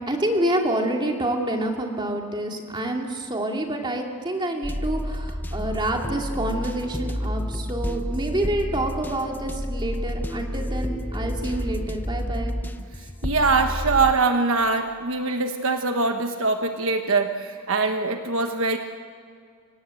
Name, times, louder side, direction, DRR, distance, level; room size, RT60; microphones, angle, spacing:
voice 1, 0.1-12.6, right 1 dB, 20° right, 1 dB, 2.7 m, -27 dB
sound 1, 4.6-14.1, equal, 10° left, 0.8 m, -30 dB
voice 2, 13.2-18.8, right 3 dB, 65° right, 5 dB, 1.3 m, -23 dB
29.0 x 17.5 x 7.8 m, 2.2 s
head